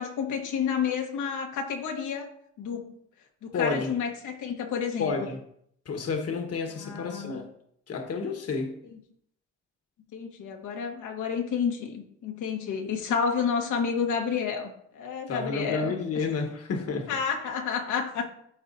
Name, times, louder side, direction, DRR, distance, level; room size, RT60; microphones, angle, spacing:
voice 1, 0.0-2.3 2.6-2.9 3.4-5.2 6.8-7.4 10.1-16.3 17.1-18.3, left 6 dB, 80° left, 3 dB, 1.3 m, -30 dB
voice 2, 3.5-3.9 5.0-5.4 5.8-7.5 7.9-8.7 15.3-17.1, left 4 dB, 55° left, 4 dB, 1.3 m, -30 dB
12.5 x 4.2 x 2.7 m, 0.70 s
cardioid pair, 90°, 30 cm